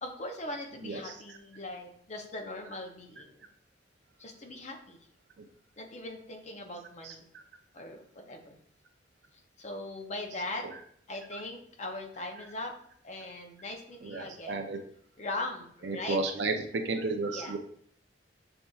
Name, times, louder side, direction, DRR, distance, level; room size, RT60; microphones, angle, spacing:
voice 1, 0.0-3.4 4.2-5.0 5.8-7.3 7.7-8.6 9.6-10.7 11.1-12.7 13.0-14.6 15.2-16.2 17.3-17.6, left 2 dB, 40° left, 3 dB, 0.6 m, -40 dB
voice 2, 0.8-1.4 7.0-7.4 10.6-10.7 14.0-14.8 15.8-17.6, right 3 dB, 65° right, 5 dB, 0.5 m, -33 dB
6.8 x 2.5 x 2.3 m, 0.63 s
head